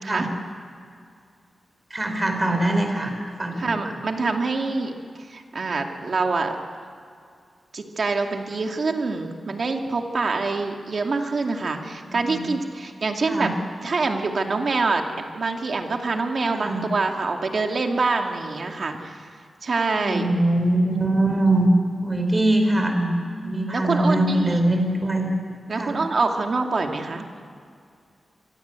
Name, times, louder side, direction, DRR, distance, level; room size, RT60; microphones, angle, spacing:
voice 1, 1.9-3.1 3.4-3.7 12.0-12.5 13.3-13.5 16.5-16.9 20.0-21.7 22.0-25.3 25.7-26.0, right 1 dB, 20° right, 4 dB, 4.7 m, -23 dB
voice 2, 3.6-4.9 5.3-6.6 7.7-13.5 13.8-19.2 19.6-20.3 23.4-24.6 25.7-27.3, right 3 dB, 50° right, 3 dB, 2.5 m, -25 dB
27.0 x 23.0 x 8.3 m, 2.4 s
wide cardioid pair, 125°, 0 cm